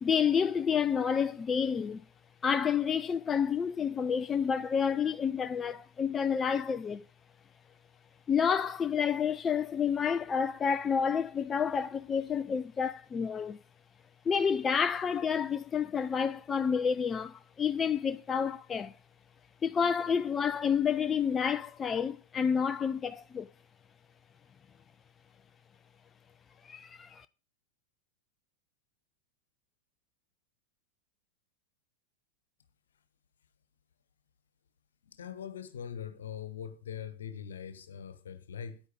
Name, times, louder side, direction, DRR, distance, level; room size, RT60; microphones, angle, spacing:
voice 1, 0.0-2.0 2.4-7.0 8.3-13.6 14.3-18.9 19.6-23.5 26.6-27.3, left 7 dB, 20° left, 0.5 m, -29 dB
voice 2, 35.0-38.8, left 8 dB, 65° left, 1.3 m, -42 dB
9.9 x 9.5 x 5.2 m
figure-of-eight pair, 90°, 0 cm